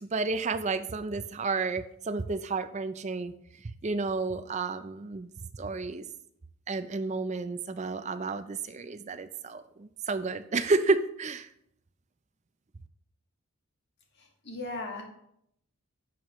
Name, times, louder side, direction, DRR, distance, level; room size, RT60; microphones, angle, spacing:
voice 1, 0.0-3.3 3.8-6.0 6.7-11.5, right 3 dB, 30° right, 12 dB, 0.4 m, -31 dB
voice 2, 14.2-15.0, left 2 dB, 50° left, 1 dB, 1.9 m, -37 dB
11.0 x 7.3 x 3.1 m, 0.73 s
head